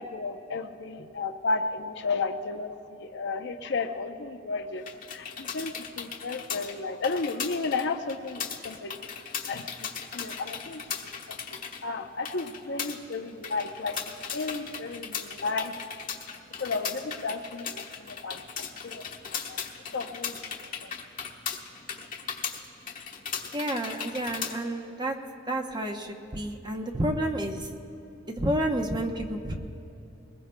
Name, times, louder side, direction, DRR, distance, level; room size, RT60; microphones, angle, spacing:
voice 1, 0.0-4.8 5.1-8.9 9.5-10.8 11.3-11.4 11.8-14.0 14.3-16.0 16.6-19.0 19.3-19.6 19.9-20.9, left 3 dB, 65° left, 6 dB, 0.6 m, -33 dB
sound 1, 4.8-24.6, left 7 dB, 45° left, 1.1 m, -38 dB
voice 2, 23.5-25.2 25.5-27.7 28.3-29.5, right 1 dB, 25° right, 3 dB, 0.8 m, -30 dB
22.5 x 20.5 x 2.2 m, 2.9 s
head